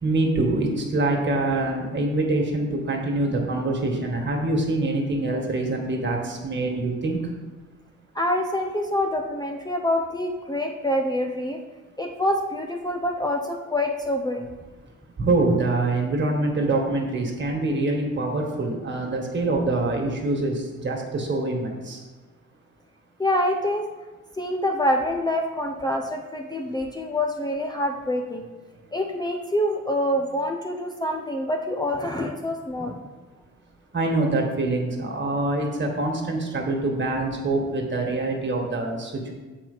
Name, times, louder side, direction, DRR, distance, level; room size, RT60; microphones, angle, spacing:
voice 1, 0.0-7.2 15.2-22.0 33.9-39.3, right 2 dB, 40° right, 1 dB, 1.7 m, -25 dB
voice 2, 8.1-11.6 12.0-14.5 23.2-23.9 24.4-28.5 28.9-32.9, left 1 dB, 15° left, 2 dB, 0.6 m, -26 dB
7.0 x 4.6 x 5.5 m, 1.2 s
cardioid pair, 90°, 30 cm